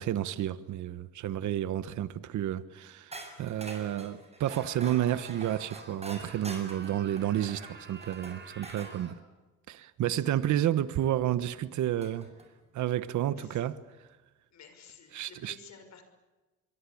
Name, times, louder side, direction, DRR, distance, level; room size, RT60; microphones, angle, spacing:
voice 1, 0.0-9.2 9.7-12.3 12.7-13.8 15.1-15.6, right 12 dB, 75° right, 1.2 m, -31 dB
sound 1, 3.1-9.0 10.9-11.0 12.0-12.5, right 2 dB, 20° right, 7.4 m, -46 dB
Screaming, 4.4-9.2, right 4 dB, 35° right, 5.2 m, -49 dB
voice 2, 14.5-16.0, left 6 dB, 65° left, 6.0 m, -52 dB
25.5 x 23.0 x 8.6 m
cardioid pair, 90°, 30 cm